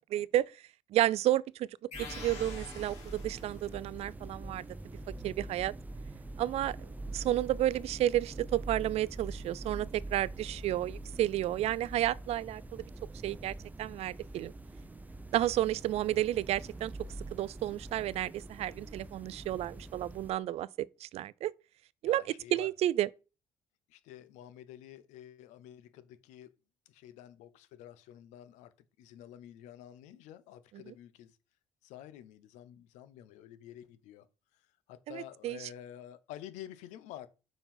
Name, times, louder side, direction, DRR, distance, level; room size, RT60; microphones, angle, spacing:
voice 1, 0.1-0.5 0.9-1.7 2.0-4.6 5.2-5.7 6.4-6.8 7.1-12.8 13.2-14.5 15.3-16.9 17.3-21.5 22.0-22.2 22.5-23.1 35.1-35.7, right 13 dB, 60° right, 0.4 m, -31 dB
sound 1, 1.9-3.8, left 4 dB, 60° left, 2.8 m, -46 dB
sound 2, 1.9-20.3, right 2 dB, 15° right, 0.7 m, -44 dB
voice 2, 22.0-22.7 23.9-26.6 26.9-28.7 29.0-31.4 31.8-34.3 34.5-37.3, left 11 dB, 85° left, 0.7 m, -50 dB
5.4 x 4.6 x 5.5 m
supercardioid pair, 85°, 12 cm